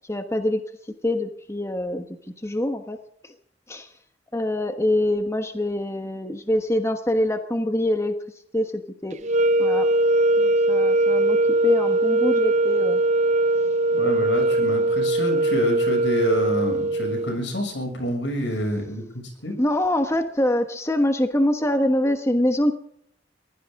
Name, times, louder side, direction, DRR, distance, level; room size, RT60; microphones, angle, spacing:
voice 1, 0.1-0.6 1.0-2.1 2.4-3.0 3.7-3.9 4.3-8.1 8.5-9.2 9.6-9.9 10.4-13.0 19.6-22.7, left 1 dB, 15° left, 6 dB, 1.2 m, -24 dB
sound 1, 9.2-17.4, right 2 dB, 40° right, 0.5 m, -21 dB
voice 2, 13.9-19.0 19.4-19.6, equal, 80° left, 3 dB, 6.7 m, -27 dB
22.5 x 16.0 x 3.7 m, 0.68 s
head